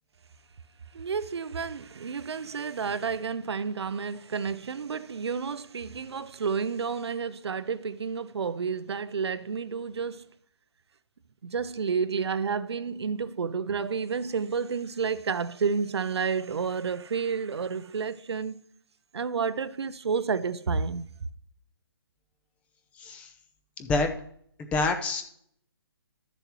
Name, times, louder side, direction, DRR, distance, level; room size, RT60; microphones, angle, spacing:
voice 1, 0.9-10.3 11.4-18.6 19.1-21.1, right 5 dB, 80° right, 0.6 m, -30 dB
voice 2, 23.0-23.3 23.8-24.1 24.7-25.2, left 3 dB, 10° left, 0.5 m, -26 dB
13.0 x 7.0 x 3.0 m
hypercardioid pair, 160°, 14 cm